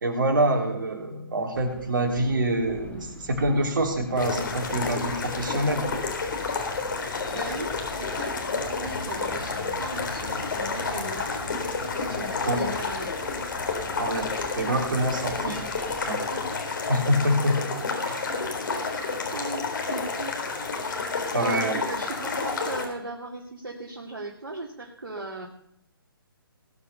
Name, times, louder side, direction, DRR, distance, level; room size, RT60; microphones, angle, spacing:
voice 1, 0.0-5.9 12.5-12.6 14.0-15.7 16.1-16.2 16.9-17.7 18.0-18.2 21.3-21.8, right 1 dB, 60° right, 3 dB, 3.7 m, -26 dB
sound 1, 1.5-16.1, left 4 dB, 10° left, 1.8 m, -46 dB
sound 2, 4.2-22.8, left 4 dB, 60° left, 4.0 m, -30 dB
voice 2, 7.3-8.4 8.7-13.2 15.4-15.7 16.3-16.6 18.7-20.4 21.3-25.5, right 2 dB, 80° right, 1 dB, 2.4 m, -37 dB
20.0 x 7.0 x 6.7 m, 0.71 s
figure-of-eight pair, 140°, 12 cm